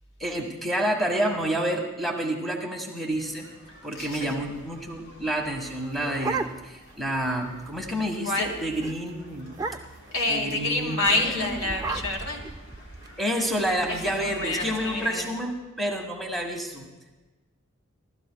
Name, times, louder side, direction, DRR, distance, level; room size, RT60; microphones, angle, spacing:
voice 1, 0.2-3.5 3.8-9.5 10.3-11.6 13.2-16.9, right 1 dB, ahead, 1 dB, 1.5 m, -29 dB
sound 1, 3.1-15.1, equal, 55° left, 3.5 m, -50 dB
voice 2, 3.9-4.3 8.2-8.5 10.1-12.5 13.9-15.3, left 2 dB, 85° left, 1 dB, 3.3 m, -28 dB
sound 2, 5.7-6.9 7.3-7.4 7.7-8.0 8.3-8.5 8.8-9.0 9.5-10.1 11.0-13.1, right 3 dB, 15° right, 0.5 m, -34 dB
30.0 x 13.5 x 2.3 m, 1.2 s
head